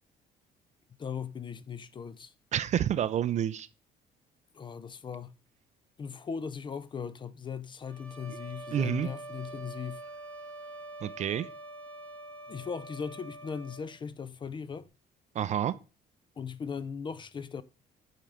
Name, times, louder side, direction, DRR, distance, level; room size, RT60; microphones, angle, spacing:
voice 1, 1.0-2.3 4.5-5.3 6.0-10.0 12.5-14.9 16.4-17.6, left 6 dB, 30° left, 0.4 m, -38 dB
voice 2, 2.5-3.7 8.7-9.1 11.0-11.5 15.3-15.8, right 10 dB, 45° right, 0.4 m, -29 dB
sound 1, 7.9-13.9, right 2 dB, 10° left, 1.2 m, -45 dB
8.6 x 3.8 x 3.3 m
cardioid pair, 110°, 17 cm